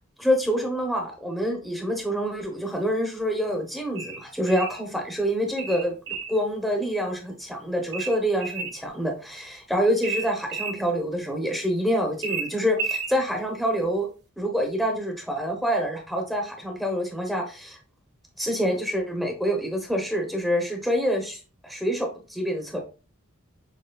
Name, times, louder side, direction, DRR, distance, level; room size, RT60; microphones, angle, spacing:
voice 1, 0.2-5.9 6.3-14.1 14.4-17.8 18.4-22.8, equal, ahead, 2 dB, 0.8 m, -26 dB
sound 1, 4.0-4.8 5.6-6.4 7.9-8.8 10.0-10.8 12.2-13.1, right 4 dB, 55° right, 1.5 m, -32 dB
6.7 x 3.0 x 2.3 m, 0.33 s
head